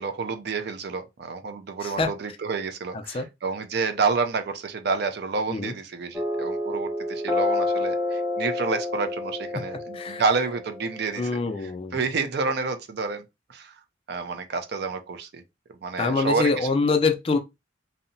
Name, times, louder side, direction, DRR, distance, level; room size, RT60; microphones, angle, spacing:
voice 1, 0.0-11.3 11.6-13.2 13.5-13.7 14.1-15.4 15.8-16.7, right 4 dB, 55° right, 0.4 m, -29 dB
sound 1, 6.1-11.2, left 2 dB, 5° right, 0.8 m, -29 dB
voice 2, 11.2-12.0 16.0-17.4, left 4 dB, 30° left, 0.3 m, -24 dB
2.7 x 2.0 x 2.6 m
head